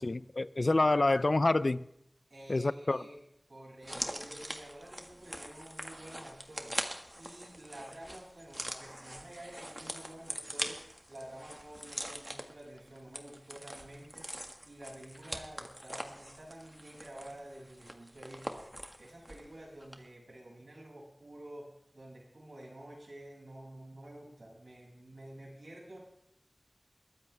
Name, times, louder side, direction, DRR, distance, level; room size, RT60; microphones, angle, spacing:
voice 1, 0.0-1.9 2.5-3.0, left 2 dB, 70° left, 16 dB, 0.5 m, -27 dB
voice 2, 0.6-0.9 2.3-3.2 3.5-10.8 11.1-18.7 19.0-26.0, right 1 dB, 85° right, -3 dB, 7.0 m, -50 dB
sound 1, 3.8-19.5 19.8-19.9, equal, 15° right, 1.9 m, -43 dB
22.0 x 14.5 x 3.5 m, 0.78 s
wide cardioid pair, 45°, 0 cm